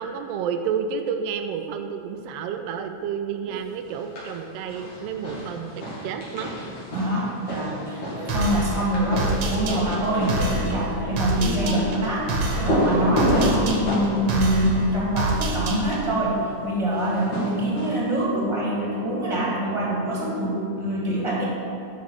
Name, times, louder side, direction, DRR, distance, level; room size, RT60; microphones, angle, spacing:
voice 1, 0.0-6.5, right 7 dB, 85° right, 7 dB, 1.4 m, -30 dB
sound 1, 3.9-4.4 4.7-15.7 16.9-18.2, equal, 70° left, 4.1 m, -29 dB
voice 2, 6.9-16.4 16.6-21.4, right 1 dB, 10° right, -5 dB, 1.7 m, -25 dB
sound 2, 8.3-16.2, right 2 dB, 65° right, 2.3 m, -28 dB
11.5 x 7.1 x 4.8 m, 2.7 s
omnidirectional pair, 3.4 m